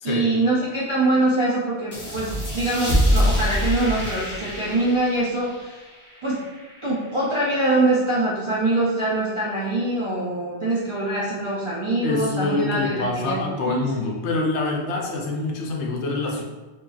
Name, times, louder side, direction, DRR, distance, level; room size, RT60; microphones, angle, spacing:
voice 1, 0.0-5.8 6.2-6.5 6.8-14.1, right 2 dB, 55° right, -7 dB, 0.3 m, -24 dB
sound 1, 1.9-7.1, equal, 10° left, 0.7 m, -26 dB
voice 2, 12.0-16.4, left 3 dB, 80° left, 0 dB, 0.9 m, -25 dB
2.9 x 2.6 x 2.3 m, 1.2 s
omnidirectional pair, 1.2 m